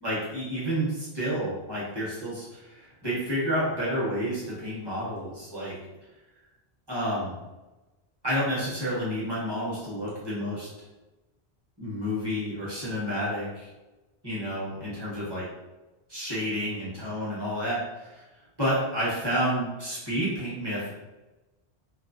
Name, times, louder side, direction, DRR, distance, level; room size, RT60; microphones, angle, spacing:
voice 1, 0.0-5.7 6.9-7.4 8.2-10.7 11.8-13.7 14.2-15.5 16.1-18.2 18.6-21.0, equal, 25° right, -8 dB, 0.9 m, -30 dB
2.4 x 2.0 x 2.5 m, 1.1 s
omnidirectional pair, 1.1 m